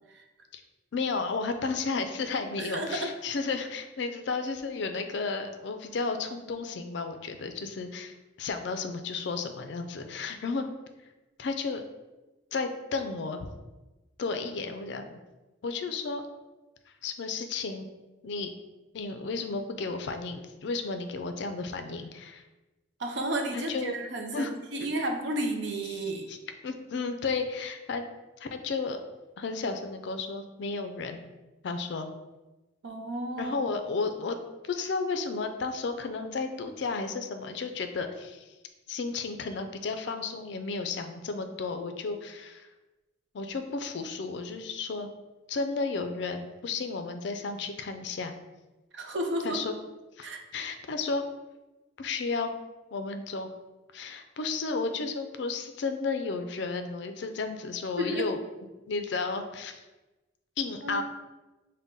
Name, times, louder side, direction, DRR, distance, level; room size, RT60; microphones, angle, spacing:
voice 1, 0.9-10.7 11.4-11.8 12.5-13.5 14.2-15.1 15.6-16.2 17.0-17.9 18.2-18.5 18.9-22.4 23.5-23.9 24.3-24.5 26.0-26.4 26.6-28.0 28.4-29.0 29.4-31.3 31.6-32.1 33.4-34.4 34.6-38.5 38.9-42.7 43.3-45.1 45.5-48.3 49.4-49.7 50.2-51.2 52.0-52.5 52.9-53.5 53.9-58.4 58.9-59.8 60.6-61.0, left 4 dB, 60° left, 7 dB, 0.4 m, -33 dB
voice 2, 2.6-3.1 23.0-26.3 32.8-33.6 48.9-49.6 50.2-50.4 58.0-58.3 60.8-61.0, right 1 dB, 60° right, 3 dB, 0.5 m, -32 dB
5.3 x 2.2 x 3.6 m, 1.1 s
head